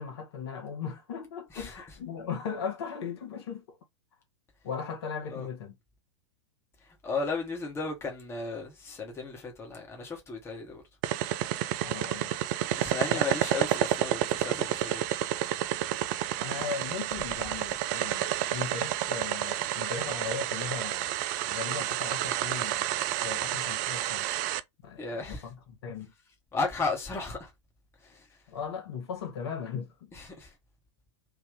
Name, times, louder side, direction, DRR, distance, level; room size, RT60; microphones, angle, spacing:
voice 1, 0.0-3.8 4.6-5.8 11.8-12.4 13.1-13.3 16.3-21.2 21.4-24.3 24.8-26.1 28.5-30.1, left 6 dB, 55° left, 1.3 m, -38 dB
voice 2, 7.0-10.8 12.8-15.0 25.0-25.4 26.5-27.5 28.0-28.2 30.1-30.5, left 4 dB, 15° left, 1.2 m, -34 dB
sound 1, 11.0-24.6, right 13 dB, 40° right, 0.4 m, -30 dB
3.5 x 2.6 x 3.7 m
figure-of-eight pair, 100°, 16 cm